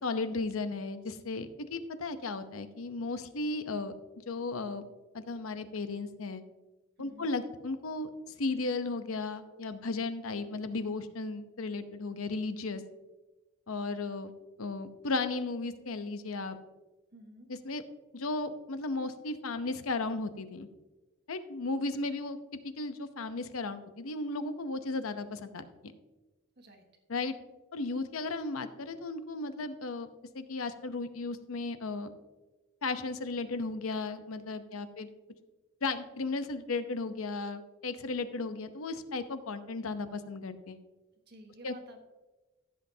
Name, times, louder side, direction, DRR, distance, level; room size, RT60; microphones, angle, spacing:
voice 1, 0.0-3.9 4.3-4.9 5.1-6.4 7.0-8.1 8.4-12.8 13.7-14.3 14.6-16.6 17.5-17.8 18.1-20.7 21.3-25.9 27.1-27.4 27.7-30.1 30.3-32.1 32.8-35.1 35.8-40.8 41.6-41.7, left 3 dB, 90° left, 10 dB, 0.7 m, -35 dB
voice 2, 7.0-7.3 17.1-17.5 26.6-26.8 41.3-42.1, right 1 dB, 50° right, 3 dB, 1.4 m, -52 dB
14.5 x 7.6 x 2.8 m, 1.1 s
head